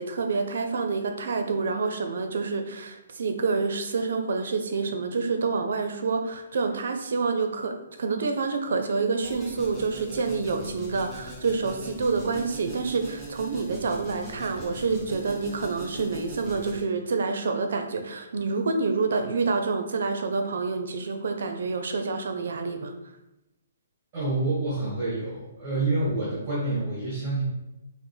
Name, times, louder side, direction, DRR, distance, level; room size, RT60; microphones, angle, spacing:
voice 1, 0.0-7.7 8.0-22.9, right 4 dB, 65° right, 6 dB, 0.5 m, -27 dB
sound 1, 9.2-16.8, right 1 dB, ahead, 0.6 m, -41 dB
voice 2, 24.1-27.4, right 2 dB, 15° right, -9 dB, 1.3 m, -27 dB
4.9 x 2.0 x 3.2 m, 0.94 s
hypercardioid pair, 175°, 0 cm